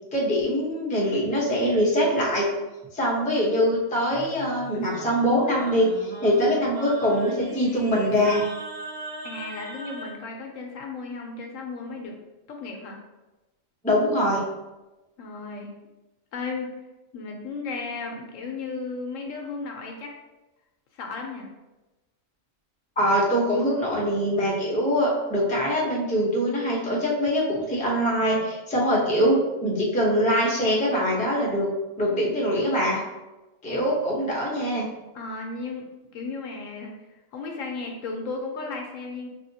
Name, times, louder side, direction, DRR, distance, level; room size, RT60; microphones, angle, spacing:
voice 1, 0.1-2.5 2.9-8.4 13.8-14.4 23.0-31.7 32.0-33.0 33.6-34.9, equal, 10° left, -4 dB, 0.5 m, -23 dB
Singing, 4.1-10.2, right 1 dB, 85° right, 1.6 m, -39 dB
voice 2, 9.2-12.1 12.5-13.0 15.2-15.7 16.3-16.7 17.1-20.1 20.9-21.5 33.7-33.9 35.1-35.8 36.1-39.3, left 3 dB, 70° left, 1 dB, 0.9 m, -35 dB
5.0 x 2.7 x 2.7 m, 1.1 s
omnidirectional pair, 1.5 m